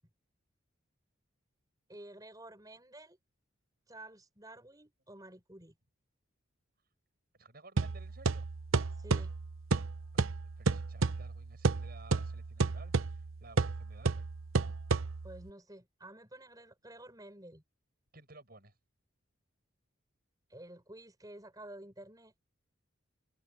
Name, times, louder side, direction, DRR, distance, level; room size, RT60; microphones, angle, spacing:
voice 1, 1.9-3.2 3.9-5.7 8.9-9.3 15.2-17.6 20.5-22.3, right 1 dB, 20° right, 6.1 m, -51 dB
voice 2, 7.4-8.5 10.1-14.3 14.6-14.7 18.1-18.7, right 2 dB, 50° right, 7.6 m, -56 dB
sound 1, 7.8-15.5, right 4 dB, 85° right, 0.8 m, -32 dB
head